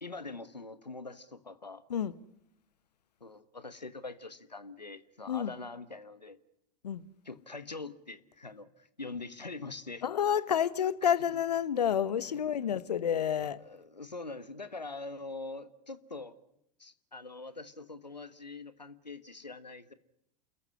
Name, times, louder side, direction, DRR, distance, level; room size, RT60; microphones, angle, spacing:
voice 1, 0.0-1.8 3.2-6.4 7.2-10.0 11.0-11.4 12.3-12.8 13.1-13.2 13.6-16.4 16.8-19.9, left 3 dB, 90° left, 1.3 m, -44 dB
voice 2, 10.0-13.6, left 9 dB, 75° left, 1.1 m, -29 dB
28.5 x 14.5 x 9.8 m
figure-of-eight pair, 85°, 21 cm